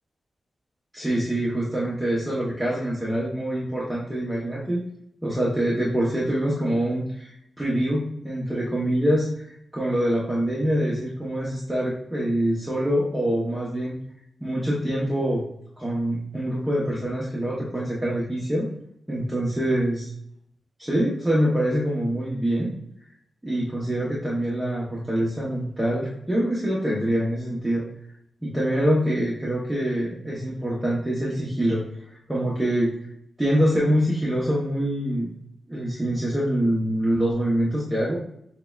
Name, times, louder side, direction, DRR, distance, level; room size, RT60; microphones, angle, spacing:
voice 1, 0.9-4.8 5.2-7.3 7.6-9.2 9.7-14.0 14.4-15.4 15.8-18.7 19.1-20.1 20.8-22.7 23.4-27.8 28.4-31.8 32.3-32.9 33.4-35.3 35.7-38.2, equal, 10° right, -6 dB, 0.8 m, -25 dB
6.5 x 2.2 x 2.3 m, 0.72 s
wide cardioid pair, 110°, 0 cm